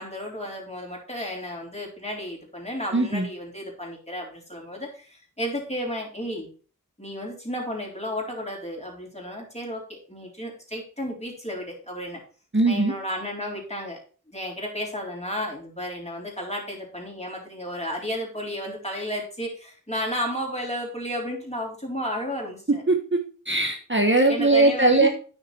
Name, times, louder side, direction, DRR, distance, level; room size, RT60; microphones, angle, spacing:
voice 1, 0.0-6.5 7.0-12.2 12.7-14.0 14.3-22.8 24.3-25.1, equal, 20° left, -1 dB, 3.8 m, -33 dB
voice 2, 2.9-3.3 12.5-12.9 22.9-23.2 23.5-25.1, right 2 dB, 35° right, 2 dB, 1.3 m, -20 dB
9.7 x 6.3 x 4.4 m, 0.39 s
wide cardioid pair, 45°, 33 cm